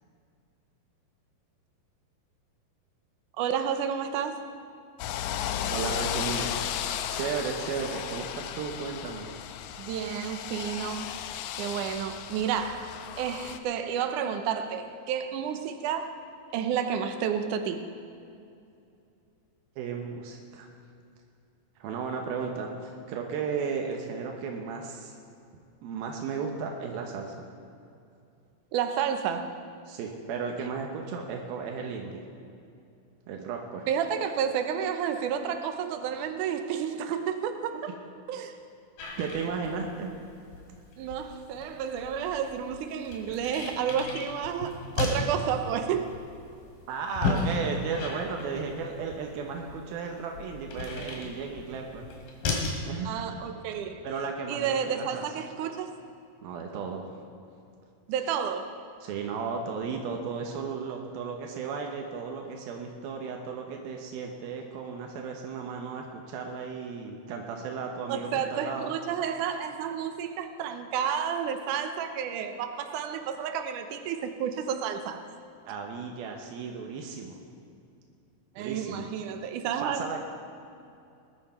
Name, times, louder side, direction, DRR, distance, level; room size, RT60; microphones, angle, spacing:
voice 1, 3.4-4.4 9.8-11.1 11.6-12.9 13.2-16.1 16.5-17.8 28.7-29.5 33.9-37.9 38.3-38.6 41.0-46.1 53.0-54.0 54.5-55.9 58.1-58.7 68.1-75.2 78.6-80.0, right 8 dB, 75° right, 7 dB, 2.2 m, -31 dB
sound 1, 5.0-13.6, left 10 dB, 90° left, 1.7 m, -34 dB
voice 2, 5.7-6.6 7.1-9.3 19.8-20.7 21.8-25.2 25.8-27.5 29.9-32.2 33.3-33.9 37.7-37.8 39.2-40.1 46.9-52.1 52.9-53.1 54.0-55.2 56.4-57.1 59.0-68.9 75.7-77.3 78.6-79.0 79.8-80.2, right 5 dB, 90° right, 2 dB, 3.0 m, -34 dB
sound 2, 39.0-52.9, left 3 dB, 70° left, 3.7 m, -35 dB
20.0 x 11.5 x 4.4 m, 2.5 s
omnidirectional pair, 4.2 m